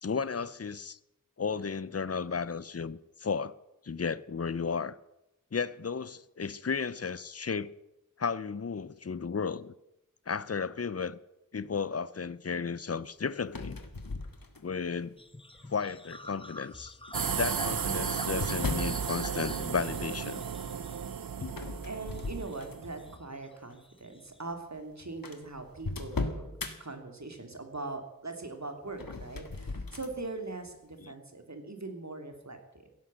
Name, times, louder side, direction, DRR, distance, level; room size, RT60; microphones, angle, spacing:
voice 1, 0.0-1.0 1.4-3.6 3.8-5.0 5.5-7.7 8.2-9.7 10.3-11.2 11.5-13.8 14.6-15.2 15.7-17.0 17.4-20.4 21.4-21.6 31.0-31.1, left 5 dB, 45° left, 0.7 m, -34 dB
sound 1, 13.4-14.9 15.5-16.0 17.1-19.0 21.5-23.0 23.5-23.7 24.5-24.6 24.8-24.9 25.2-26.7 28.9-30.2, left 3 dB, 85° left, 1.8 m, -37 dB
sound 2, 15.2-21.6 22.1-23.5 23.7-24.4, left 1 dB, 15° left, 1.2 m, -46 dB
sound 3, 17.1-23.2, right 7 dB, 85° right, 0.7 m, -34 dB
voice 2, 21.9-32.9, right 3 dB, 55° right, 2.9 m, -41 dB
16.5 x 11.0 x 7.6 m
wide cardioid pair, 50°, 34 cm